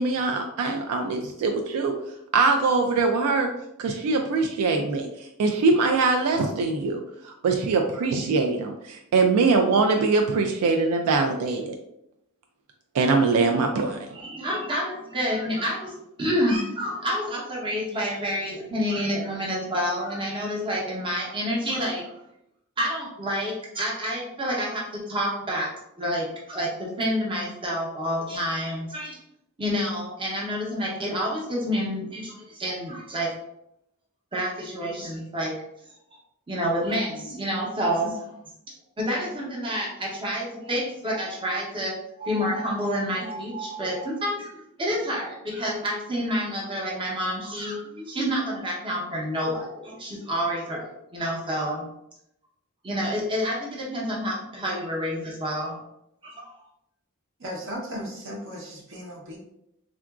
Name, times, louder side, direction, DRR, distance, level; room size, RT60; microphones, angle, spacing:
voice 1, 0.0-1.9 2.3-3.5 3.8-5.1 5.4-7.0 7.4-11.7 12.9-14.1, right 4 dB, 80° right, 4 dB, 0.3 m, -22 dB
voice 2, 14.1-22.1 22.8-25.7 26.0-29.2 29.6-33.3 34.3-35.5 36.5-38.2 39.0-44.5 44.8-51.9 52.8-55.8 56.2-56.5, equal, 25° right, -3 dB, 0.7 m, -28 dB
voice 3, 57.4-59.4, equal, 60° right, -1 dB, 0.8 m, -36 dB
3.7 x 2.4 x 2.3 m, 0.80 s
head